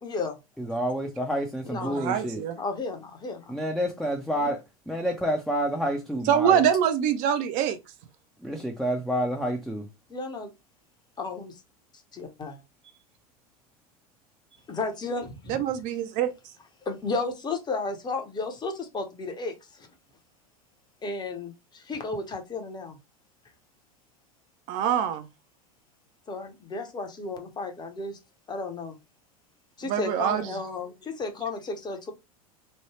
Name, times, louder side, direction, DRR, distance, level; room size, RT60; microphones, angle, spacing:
voice 1, 0.0-0.4 1.6-2.0 2.6-3.4 10.1-10.5 11.2-11.6 12.1-12.6 14.7-15.6 16.9-19.9 21.0-23.0 26.3-28.2 28.5-29.0 29.8-32.1, left 3 dB, 20° left, 0.9 m, -33 dB
voice 2, 0.6-2.4 3.5-6.6 8.4-9.9, equal, ahead, 0.6 m, -29 dB
voice 3, 1.8-2.6 6.3-7.8 15.5-16.3 24.7-25.3 29.9-30.5, right 9 dB, 45° right, 0.5 m, -24 dB
3.2 x 2.2 x 3.1 m
hypercardioid pair, 90°, 19 cm